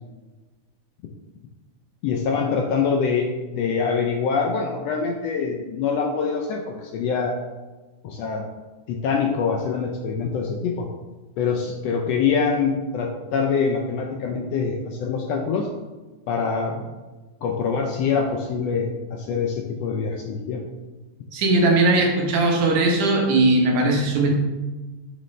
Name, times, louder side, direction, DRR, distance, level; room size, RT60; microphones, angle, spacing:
voice 1, 2.0-7.4 8.0-8.5 8.9-10.9 11.4-15.7 16.3-16.8 17.4-20.6, left 5 dB, 75° left, 1 dB, 1.5 m, -24 dB
voice 2, 21.3-24.3, right 2 dB, 85° right, 0 dB, 2.7 m, -19 dB
6.7 x 6.4 x 3.2 m, 1.2 s
omnidirectional pair, 3.4 m